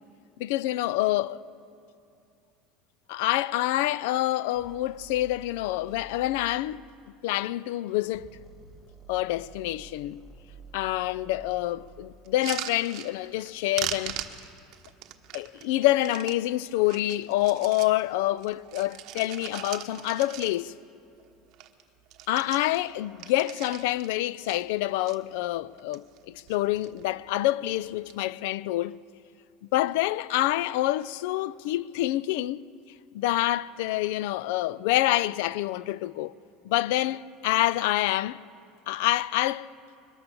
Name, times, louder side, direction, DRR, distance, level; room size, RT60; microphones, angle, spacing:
voice 1, 0.4-1.4 3.1-6.8 7.2-8.3 9.1-10.2 10.7-14.2 15.3-20.7 22.3-29.0 29.7-32.7 33.1-36.3 36.6-38.4 38.9-39.7, left 15 dB, 80° left, 0.4 m, -27 dB
sound 1, 4.5-6.6 8.0-12.4, right 5 dB, 5° right, 2.1 m, -50 dB
sound 2, 12.2-13.5 13.7-16.4 16.8-18.0 18.4-20.8 21.2-21.3 21.5-21.8 22.1-24.1 24.4-25.2 25.7-26.2 26.5-27.0 27.9-28.1, right 12 dB, 55° right, 1.2 m, -39 dB
22.5 x 19.0 x 6.8 m
supercardioid pair, 135°, 0 cm